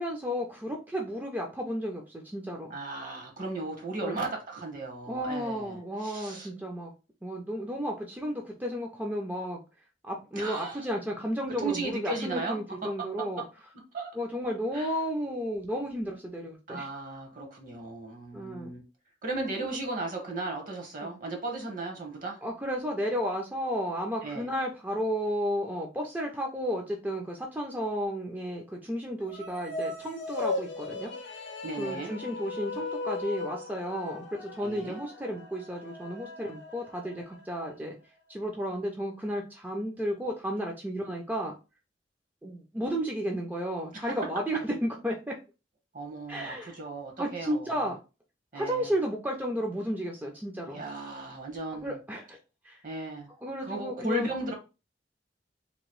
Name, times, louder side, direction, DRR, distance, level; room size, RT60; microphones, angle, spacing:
voice 1, 0.0-2.7 4.0-4.2 5.1-6.9 7.2-9.6 10.0-13.4 14.2-16.9 18.3-18.7 19.6-19.8 21.0-21.1 22.4-31.1 31.8-38.0 38.3-41.5 42.4-45.4 46.3-46.7 47.2-48.0 48.5-50.8 51.8-52.4 52.6-52.8 53.4-54.3, equal, 10° right, 0.4 m, -33 dB
voice 2, 2.7-6.5 10.3-10.9 11.6-13.1 13.4-13.5 13.9-14.1 14.7-14.9 16.7-18.8 19.2-22.4 24.2-24.5 31.6-32.1 34.6-35.0 43.9-44.2 45.9-47.9 48.5-48.9 50.6-52.0 52.8-53.3 53.6-54.5, right 2 dB, 50° right, 1.0 m, -36 dB
sound 1, 29.2-37.7, left 3 dB, 70° left, 0.6 m, -38 dB
2.9 x 2.6 x 3.0 m
head